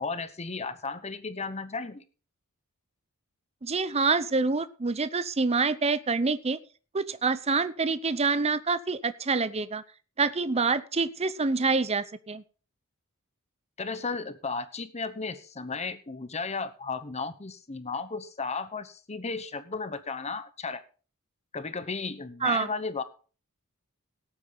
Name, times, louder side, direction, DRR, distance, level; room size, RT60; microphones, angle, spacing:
voice 1, 0.0-2.0 13.8-20.8 21.5-23.0, left 4 dB, 30° left, 12 dB, 1.0 m, -34 dB
voice 2, 3.6-6.6 6.9-9.8 10.2-12.4 22.4-22.7, right 4 dB, 30° right, 15 dB, 0.7 m, -26 dB
17.5 x 8.9 x 4.0 m, 0.37 s
head